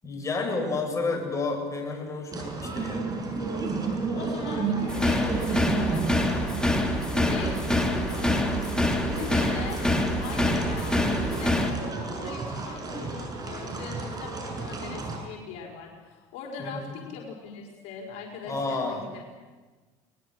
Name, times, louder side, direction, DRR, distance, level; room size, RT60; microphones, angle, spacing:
voice 1, 0.0-3.2 16.6-17.0 18.5-19.1, left 3 dB, 25° left, 2 dB, 7.3 m, -31 dB
sound 1, 2.3-15.2, right 4 dB, 30° right, 6.5 m, -32 dB
voice 2, 3.7-6.5 7.1-8.5 9.1-9.8 10.2-19.2, left 5 dB, 70° left, -1 dB, 4.9 m, -41 dB
sound 2, 4.9-11.7, left 1 dB, 5° left, 3.4 m, -26 dB
21.5 x 21.0 x 7.9 m, 1.3 s
supercardioid pair, 90°, 12 cm